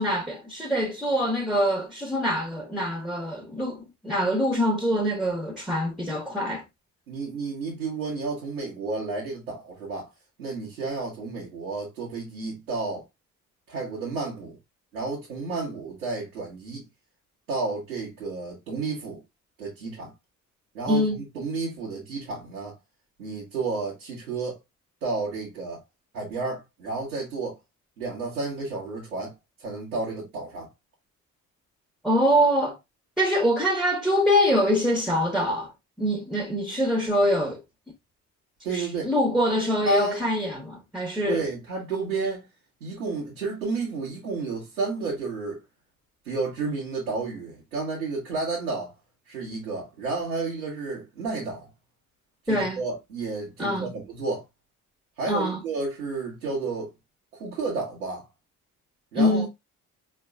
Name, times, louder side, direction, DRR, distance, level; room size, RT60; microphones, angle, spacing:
voice 1, 0.0-6.6 20.9-21.2 32.0-32.8 33.2-35.7 36.0-37.6 38.7-41.4 52.5-52.8 53.6-53.9 55.3-55.6 59.2-59.5, equal, ahead, 1.2 m, -24 dB
voice 2, 7.1-10.1 10.4-13.0 13.7-14.6 14.9-16.8 17.5-19.2 19.6-20.1 20.7-22.7 23.2-24.6 25.0-25.8 26.1-27.6 28.0-29.3 29.6-30.7 38.6-39.1 39.8-40.2 41.3-42.4 42.8-45.6 46.2-48.9 49.3-51.7 52.4-54.4 55.2-56.9 57.4-58.3 59.1-59.5, right 3 dB, 85° right, 1.3 m, -31 dB
4.6 x 3.2 x 2.4 m
figure-of-eight pair, 45°, 41 cm